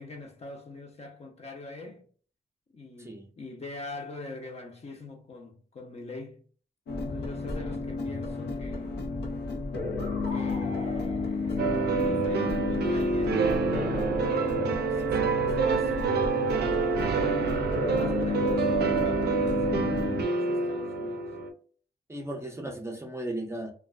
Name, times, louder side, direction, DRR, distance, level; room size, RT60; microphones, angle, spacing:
voice 1, 0.0-2.1 2.7-6.4 7.1-8.9 10.3-13.6 14.4-15.9 17.8-21.4, left 2 dB, 40° left, 0.6 m, -43 dB
sound 1, 6.9-20.2, left 3 dB, 85° left, 0.6 m, -31 dB
sound 2, 11.6-21.5, right 5 dB, 75° right, 0.4 m, -27 dB
voice 2, 22.1-23.7, right 1 dB, 15° right, 0.5 m, -36 dB
2.4 x 2.2 x 2.3 m
cardioid pair, 85°, 17 cm